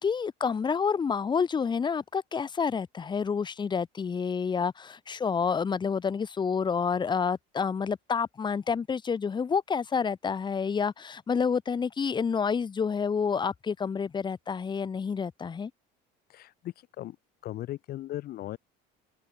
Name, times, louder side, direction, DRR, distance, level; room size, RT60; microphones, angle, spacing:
voice 1, 0.0-15.7, left 6 dB, 20° left, 2.8 m, -29 dB
voice 2, 16.3-17.2 17.4-18.6, left 14 dB, 50° left, 2.2 m, -38 dB
cardioid pair, 145°, 20 cm